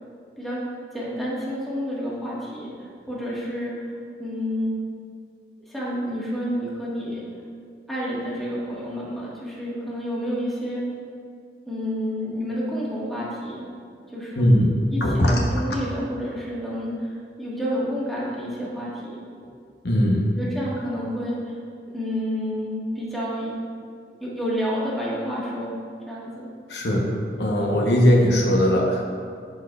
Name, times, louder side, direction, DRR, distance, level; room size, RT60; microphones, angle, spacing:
voice 1, 0.9-3.9 4.2-4.8 5.7-7.2 7.9-10.8 11.7-13.6 14.1-14.5 14.9-19.2 20.3-21.5 21.9-23.5 24.2-25.7 26.1-26.5, equal, ahead, -7 dB, 1.4 m, -29 dB
voice 2, 14.4-15.3 19.8-20.2 26.7-27.1 27.4-29.0, equal, 70° left, -1 dB, 0.9 m, -19 dB
12.5 x 4.5 x 2.3 m, 2.2 s
head